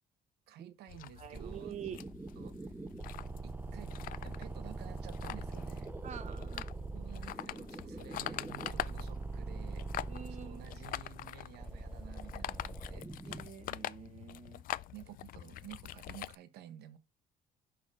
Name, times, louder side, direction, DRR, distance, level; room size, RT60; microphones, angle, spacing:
voice 1, 0.5-1.8 2.4-2.8 3.4-5.9 6.9-9.9 10.3-13.6 14.9-17.0, right 12 dB, 75° right, 1.0 m, -52 dB
sound 1, 0.9-16.4, left 13 dB, 55° left, 0.4 m, -45 dB
voice 2, 1.2-2.0 6.0-6.7 10.1-10.6 13.2-14.6, right 8 dB, 45° right, 1.0 m, -46 dB
sound 2, 1.3-13.5, right 3 dB, 10° right, 0.4 m, -43 dB
5.7 x 4.4 x 4.6 m
cardioid pair, 110°, 17 cm